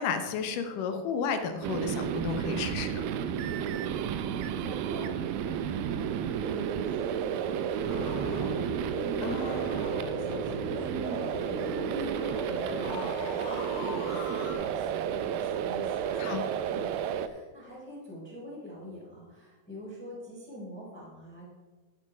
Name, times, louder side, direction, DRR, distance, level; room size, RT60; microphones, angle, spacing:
voice 1, 0.0-3.0 9.2-9.6 16.2-16.5, left 6 dB, 75° left, 7 dB, 2.4 m, -32 dB
sound 1, 1.6-17.3, right 9 dB, 90° right, 2.4 m, -32 dB
voice 2, 4.2-16.3 16.7-21.5, equal, 5° left, -5 dB, 3.1 m, -45 dB
sound 2, 7.8-14.5, equal, 40° left, 2.8 m, -38 dB
12.0 x 8.0 x 5.0 m, 1.4 s
omnidirectional pair, 4.1 m